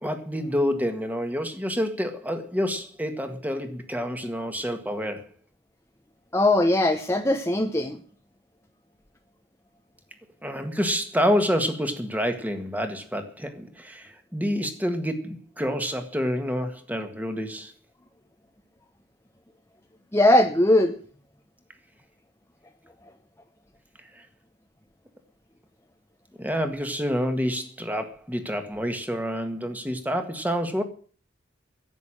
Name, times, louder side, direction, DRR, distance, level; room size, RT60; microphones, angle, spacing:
voice 1, 0.0-5.3 10.4-17.7 24.1-24.2 26.4-30.8, equal, 10° right, 7 dB, 1.7 m, -28 dB
voice 2, 6.3-8.0 20.1-20.9, left 1 dB, 15° left, 5 dB, 0.9 m, -20 dB
11.0 x 8.3 x 9.9 m, 0.43 s
head